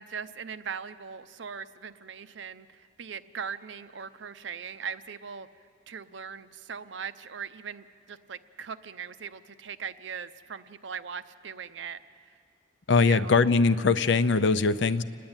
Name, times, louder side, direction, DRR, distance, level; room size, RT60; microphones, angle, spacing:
voice 1, 0.0-5.5 5.9-12.0 12.3-12.4 12.9-13.4, right 6 dB, 70° right, 13 dB, 0.6 m, -40 dB
voice 2, 12.9-15.0, left 4 dB, 65° left, 13 dB, 0.6 m, -22 dB
29.5 x 10.5 x 8.9 m, 2.3 s
head